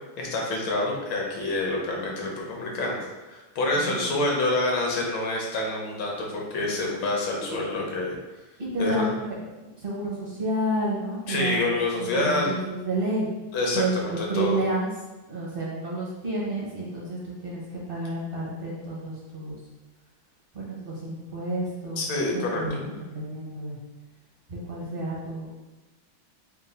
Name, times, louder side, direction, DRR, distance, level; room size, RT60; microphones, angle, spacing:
voice 1, 0.2-3.0 3.3-8.2 8.8-9.1 11.3-12.5 13.5-14.6 22.0-22.8, left 2 dB, 80° left, -1 dB, 1.6 m, -27 dB
voice 2, 3.7-4.4 7.4-7.6 8.6-9.3 9.6-13.3 13.7-14.9 15.3-19.6 20.5-22.0 22.3-23.8 24.5-25.5, right 1 dB, 50° right, -5 dB, 0.6 m, -30 dB
4.4 x 2.3 x 3.8 m, 1.1 s
omnidirectional pair, 2.1 m